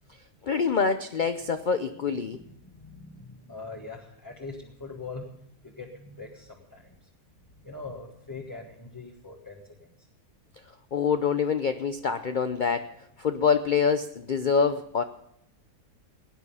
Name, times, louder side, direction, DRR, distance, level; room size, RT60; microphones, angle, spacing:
voice 1, 0.4-2.4 10.9-12.9 13.2-15.0, left 6 dB, 65° left, 9 dB, 0.4 m, -25 dB
voice 2, 2.0-7.1 7.5-10.1, left 3 dB, 15° left, -1 dB, 1.3 m, -43 dB
17.5 x 9.7 x 5.5 m, 0.77 s
omnidirectional pair, 1.7 m